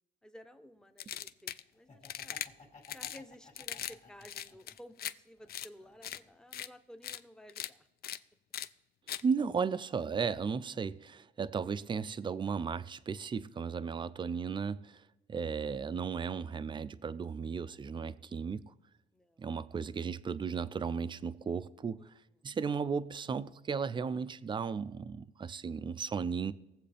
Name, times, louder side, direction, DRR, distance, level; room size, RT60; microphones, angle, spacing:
voice 1, 0.2-2.4 2.9-7.9 19.1-19.6 22.0-22.1 22.4-22.5, equal, 5° left, 0.7 m, -55 dB
sound 1, 1.0-1.6 2.0-2.5 2.8-3.2 3.6-3.9 4.2-5.1 5.5-5.7 6.0-6.2 6.5-6.7 7.0-7.2 7.5-7.7 8.0-8.2 8.5-8.7 9.1-9.2, left 10 dB, 50° left, 0.4 m, -40 dB
Laughter, 1.7-4.9 5.4-6.5, left 4 dB, 35° left, 2.1 m, -57 dB
voice 2, 9.2-15.0 15.3-18.7 19.4-22.0 22.4-26.5, right 6 dB, 25° right, 0.4 m, -35 dB
20.0 x 7.5 x 3.4 m
cardioid pair, 125°, 20 cm